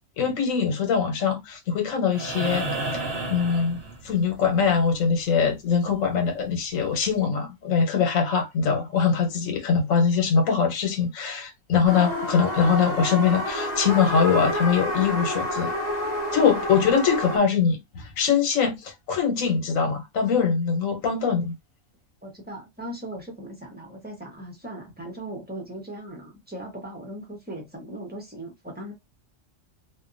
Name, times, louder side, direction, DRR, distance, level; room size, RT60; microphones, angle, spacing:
voice 1, 0.2-2.7 3.0-15.7 16.3-21.5, left 6 dB, 80° left, 1.2 m, -23 dB
sound 1, 2.1-4.4 6.3-6.4, right 2 dB, 55° right, 0.9 m, -31 dB
sound 2, 11.9-17.4, left 1 dB, 45° left, 0.6 m, -29 dB
voice 2, 22.2-28.9, right 1 dB, 10° right, 0.6 m, -38 dB
2.7 x 2.2 x 2.5 m
omnidirectional pair, 1.4 m